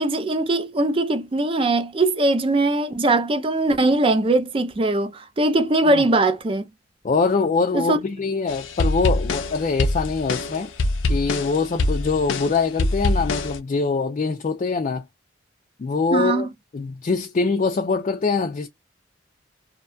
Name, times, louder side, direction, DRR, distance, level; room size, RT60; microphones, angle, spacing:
voice 1, 0.0-6.7 7.7-8.0 16.1-16.5, right 2 dB, 30° right, 0.4 m, -21 dB
voice 2, 7.0-10.7 11.1-15.0 15.8-16.5 16.7-18.7, left 4 dB, 40° left, 0.4 m, -23 dB
sound 1, 8.5-13.6, left 2 dB, 90° left, 0.5 m, -24 dB
2.7 x 2.2 x 2.6 m
head